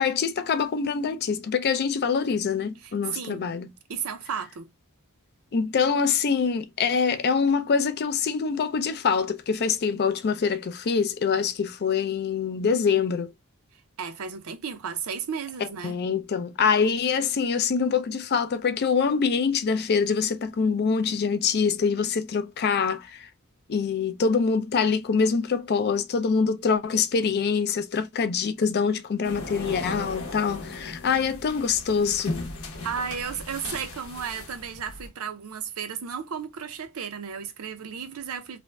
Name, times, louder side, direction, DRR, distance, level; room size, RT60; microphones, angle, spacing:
voice 1, 0.0-3.7 5.5-13.3 15.8-23.3 23.7-32.4, left 5 dB, 50° left, 0.4 m, -25 dB
voice 2, 2.8-3.5 3.9-4.7 13.7-16.0 32.8-38.6, right 7 dB, 75° right, 0.5 m, -34 dB
sound 1, 29.2-35.1, left 2 dB, 65° left, 0.8 m, -37 dB
2.5 x 2.1 x 3.1 m
head